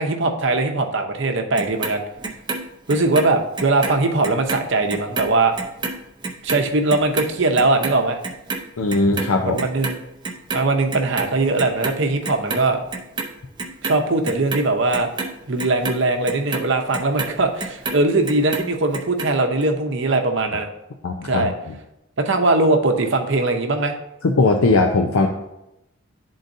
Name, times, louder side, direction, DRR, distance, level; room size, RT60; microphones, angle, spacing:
voice 1, 0.0-2.0 2.9-5.6 6.4-8.2 9.4-10.0 10.5-12.8 13.8-15.1 15.5-20.7 21.2-21.5 22.2-24.0, right 2 dB, 60° right, 4 dB, 0.7 m, -20 dB
Clock, 1.6-4.0 4.2-10.6 10.9-12.0 12.2-13.3 13.6-18.0 18.3-19.3 19.6-19.7, right 3 dB, 20° right, 0.6 m, -29 dB
voice 2, 8.8-9.6 21.0-21.8 24.2-25.3, left 3 dB, 80° left, 3 dB, 0.5 m, -19 dB
11.5 x 3.9 x 2.6 m, 0.89 s
head